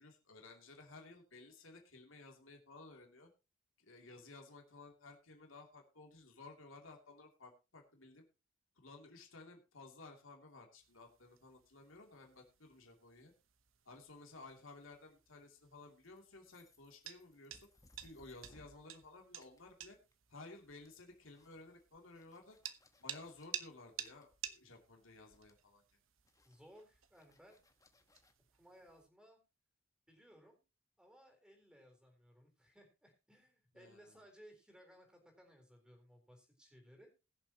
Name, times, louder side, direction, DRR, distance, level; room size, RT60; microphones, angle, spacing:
voice 1, 0.0-3.3 3.8-8.2 8.8-13.3 13.8-17.7 18.0-20.0 20.3-22.6 23.0-25.8 33.7-34.3, left 3 dB, 80° left, 2 dB, 2.8 m, -56 dB
sound 1, 10.8-29.1, right 11 dB, 80° right, 1.0 m, -53 dB
sound 2, 16.0-19.1 19.4-20.3 20.5-23.5 24.1-24.9 25.2-25.8 26.3-28.3, left 1 dB, 15° left, 1.2 m, -68 dB
voice 2, 26.4-27.6 28.5-29.4 30.1-30.6 31.0-37.1, equal, 5° right, 3 dB, 4.0 m, -62 dB
21.5 x 7.2 x 2.9 m, 0.29 s
head